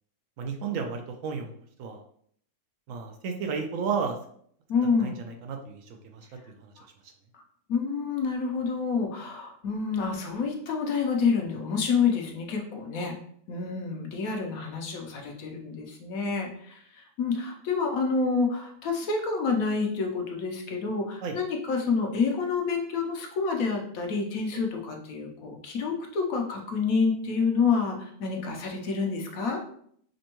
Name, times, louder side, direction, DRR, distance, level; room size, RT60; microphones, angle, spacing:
voice 1, 0.4-1.5 1.8-2.0 2.9-4.2 5.0-5.1 5.4-6.7 21.2-21.4, right 5 dB, 70° right, 4 dB, 0.8 m, -33 dB
voice 2, 4.7-5.2 7.7-13.2 13.5-29.6, left 5 dB, 70° left, 2 dB, 1.1 m, -28 dB
5.1 x 2.2 x 2.9 m, 0.63 s
omnidirectional pair, 1.7 m